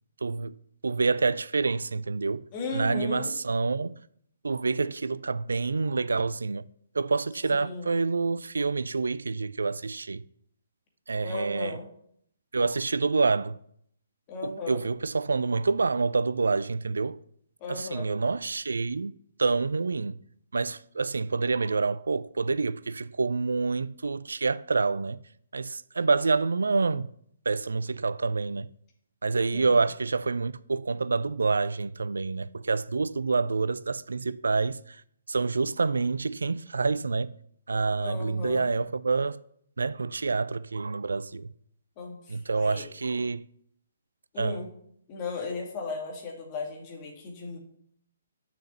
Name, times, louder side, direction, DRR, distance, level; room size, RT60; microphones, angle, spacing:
voice 1, 0.2-0.6 0.8-2.5 2.7-4.0 4.4-6.6 6.9-10.2 11.1-11.8 12.5-13.6 14.4-17.2 17.7-19.1 19.4-20.2 20.5-25.2 25.5-27.1 27.5-28.7 29.2-35.0 35.3-37.3 37.7-39.4 39.8-41.5 42.3-43.5 44.4-44.6, right 4 dB, 65° right, 0.3 m, -27 dB
voice 2, 2.5-3.3 7.5-7.9 11.2-11.9 14.3-14.8 17.6-18.1 29.5-29.8 38.0-38.7 42.0-42.9 44.3-44.7 45.1-47.6, left 3 dB, 30° left, 2.4 m, -36 dB
6.9 x 5.9 x 7.0 m
figure-of-eight pair, 130°, 0 cm